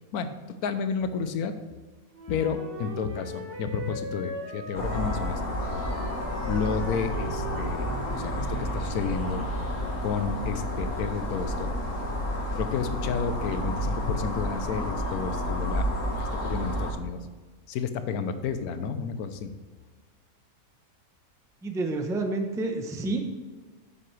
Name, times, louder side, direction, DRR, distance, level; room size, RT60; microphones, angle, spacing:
voice 1, 0.6-1.6 2.3-5.6 5.9-6.0 6.4-9.4 10.0-11.7 12.5-15.9 16.4-17.3 17.7-19.5, left 6 dB, 80° left, 10 dB, 1.2 m, -31 dB
Wind instrument woodwind instrument, 2.1-8.4, right 1 dB, 40° right, 1.4 m, -40 dB
sound 1, 4.7-16.9, equal, 60° left, 1.7 m, -30 dB
sound 2, 6.1-11.1, right 2 dB, 20° left, 1.4 m, -42 dB
voice 2, 21.6-23.2, right 2 dB, 5° right, 4 dB, 0.4 m, -29 dB
9.6 x 7.7 x 3.3 m, 1.4 s
omnidirectional pair, 1.6 m